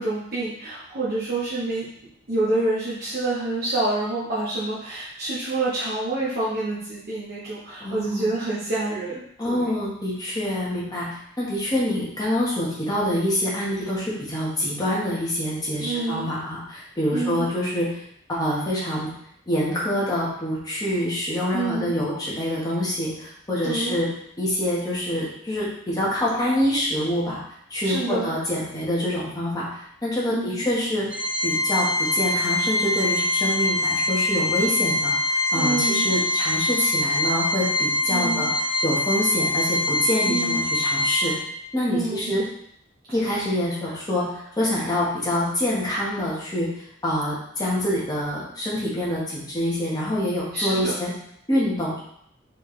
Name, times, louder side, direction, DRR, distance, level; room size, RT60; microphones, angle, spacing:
voice 1, 0.0-1.9 2.3-9.7 15.8-16.3 17.1-17.5 21.5-21.9 23.6-24.0 27.8-28.3 30.3-30.7 35.5-36.1 38.1-38.5 40.2-40.6 41.9-42.3 50.5-50.9, right 2 dB, 55° right, -10 dB, 1.1 m, -27 dB
voice 2, 7.8-8.3 9.4-11.1 11.4-17.9 18.3-19.1 19.5-24.1 24.4-27.4 27.7-31.0 31.4-38.5 38.8-41.3 41.7-42.4 43.1-44.2 44.6-46.7 47.0-51.1 51.5-52.0, left 1 dB, 20° left, -7 dB, 1.4 m, -26 dB
Organ, 31.1-41.7, left 1 dB, 5° right, 0.5 m, -24 dB
4.4 x 3.6 x 3.3 m, 0.70 s
head